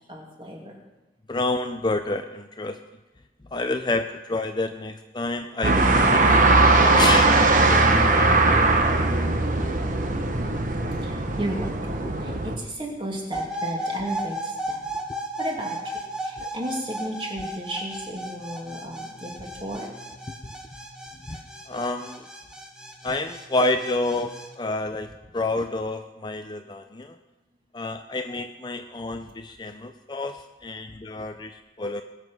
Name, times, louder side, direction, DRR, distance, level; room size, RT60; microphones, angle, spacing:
voice 1, 0.1-0.7 11.0-14.9 15.4-19.9 29.1-29.2, equal, 25° right, -1 dB, 2.6 m, -34 dB
voice 2, 1.3-2.8 3.5-6.2 6.7-7.9 8.1-8.3 12.3-12.4 16.4-16.5 21.3-21.4 21.7-22.3 23.0-27.2 27.7-32.0, left 2 dB, 25° left, 7 dB, 0.5 m, -29 dB
sound 1, 5.6-12.6, right 2 dB, 45° right, 1.1 m, -19 dB
sound 2, 13.3-24.5, right 1 dB, 5° right, 1.1 m, -34 dB
20.5 x 7.4 x 6.2 m, 1.1 s
head